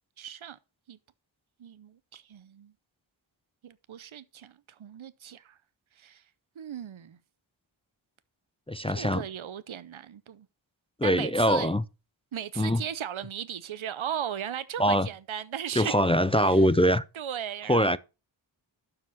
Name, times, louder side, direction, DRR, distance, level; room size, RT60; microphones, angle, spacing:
voice 1, 0.2-0.6 0.9-1.0 1.6-2.7 3.6-5.6 6.0-6.2 6.6-7.2 8.9-10.5 11.0-11.7 12.3-15.9 16.4-16.6 17.1-18.0, right 9 dB, 75° right, 0.7 m, -37 dB
voice 2, 8.7-9.3 11.0-11.8 12.6-12.8 14.8-15.1 15.8-17.0 17.7-18.0, equal, 15° left, 0.4 m, -23 dB
12.0 x 4.9 x 5.6 m
wide cardioid pair, 50°, 48 cm